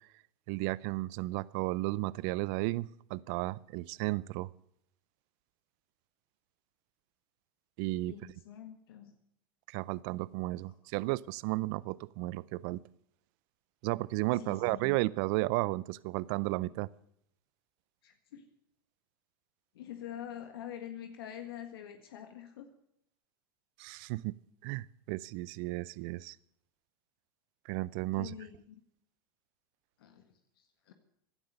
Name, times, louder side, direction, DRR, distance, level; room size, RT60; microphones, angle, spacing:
voice 1, 0.5-4.5 7.8-8.1 9.7-12.8 13.8-16.9 23.8-24.3 24.6-26.4 27.7-28.3, right 20 dB, 60° right, 0.6 m, -33 dB
voice 2, 8.1-9.1 14.3-14.8 18.0-18.4 19.7-22.7 28.1-28.7 30.0-30.9, left 10 dB, 80° left, 1.7 m, -46 dB
16.0 x 12.0 x 6.7 m
hypercardioid pair, 100°, 12 cm